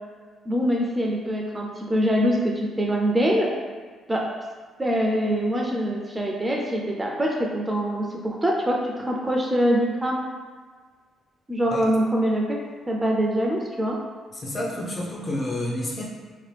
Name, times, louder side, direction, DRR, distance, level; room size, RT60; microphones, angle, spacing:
voice 1, 0.5-3.5 4.1-4.2 4.8-10.3 11.5-12.6 12.9-14.0, equal, 20° right, -1 dB, 0.4 m, -24 dB
voice 2, 14.4-16.0, left 1 dB, 35° left, -2 dB, 0.7 m, -29 dB
2.8 x 2.5 x 3.3 m, 1.5 s
cardioid pair, 90°, 0 cm